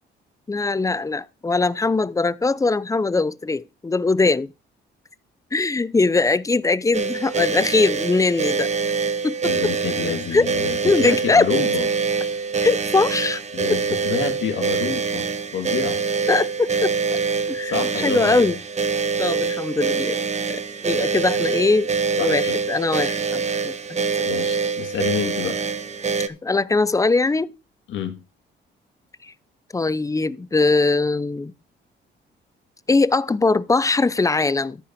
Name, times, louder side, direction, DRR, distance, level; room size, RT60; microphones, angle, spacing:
voice 1, 0.5-4.5 5.5-8.7 9.2-9.3 10.3-10.5 10.8-11.5 12.6-13.4 13.7-13.8 16.3-17.2 17.5-18.6 19.2-21.9 22.2-24.1 26.3-27.5 29.7-31.5 32.9-34.8, left 3 dB, 15° left, 0.6 m, -21 dB
sound 1, 6.9-26.3, right 5 dB, 35° right, 1.2 m, -24 dB
voice 2, 9.4-11.9 13.5-15.3 15.5-16.0 17.4-18.5 21.2-21.3 22.2-22.6 24.2-25.6 27.9-28.2, left 8 dB, 75° left, 2.3 m, -28 dB
13.5 x 5.5 x 5.3 m
cardioid pair, 90°, 20 cm